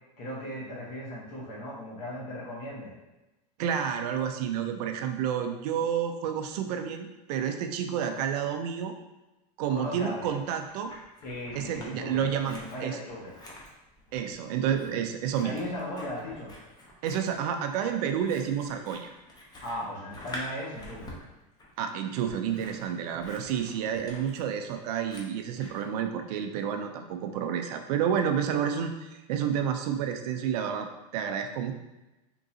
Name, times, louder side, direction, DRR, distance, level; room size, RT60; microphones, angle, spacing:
voice 1, 0.2-2.9 9.7-10.3 11.2-13.3 15.4-16.5 19.6-21.1, left 1 dB, 50° left, -5 dB, 1.3 m, -37 dB
voice 2, 3.6-8.9 9.6-10.9 11.5-13.0 14.1-15.6 17.0-19.1 21.8-30.9 31.1-31.7, right 8 dB, 70° right, 6 dB, 0.5 m, -30 dB
Scissors, 10.4-11.9 12.2-25.9, left 1 dB, 20° left, 0.7 m, -47 dB
3.7 x 3.0 x 2.6 m, 1.0 s
supercardioid pair, 120°, 21 cm